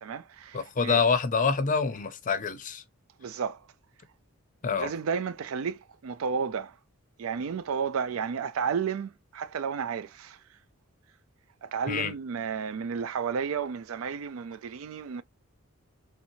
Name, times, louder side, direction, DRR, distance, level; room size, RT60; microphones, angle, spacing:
voice 1, 0.0-1.0 3.2-3.7 4.8-6.8 7.2-10.4 11.6-15.2, right 6 dB, 75° right, 0.4 m, -32 dB
voice 2, 0.5-2.8 4.6-4.9 11.9-12.1, left 5 dB, 40° left, 0.5 m, -26 dB
3.2 x 2.9 x 2.7 m
head